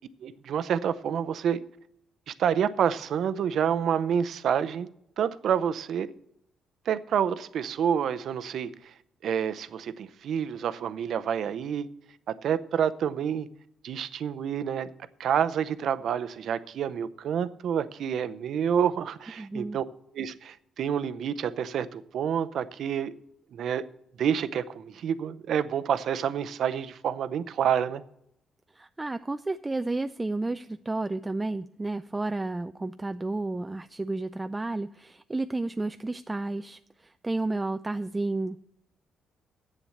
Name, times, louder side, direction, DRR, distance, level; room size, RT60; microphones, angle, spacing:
voice 1, 0.2-1.6 2.3-4.9 5.2-6.1 6.9-8.9 9.2-11.9 12.3-13.5 13.8-14.9 15.2-19.8 20.1-23.1 23.5-23.8 24.2-28.0, right 8 dB, 65° right, 0.6 m, -28 dB
voice 2, 19.4-19.8 28.7-38.6, right 2 dB, 15° right, 0.3 m, -31 dB
7.9 x 7.2 x 8.4 m
cardioid pair, 90°, 0 cm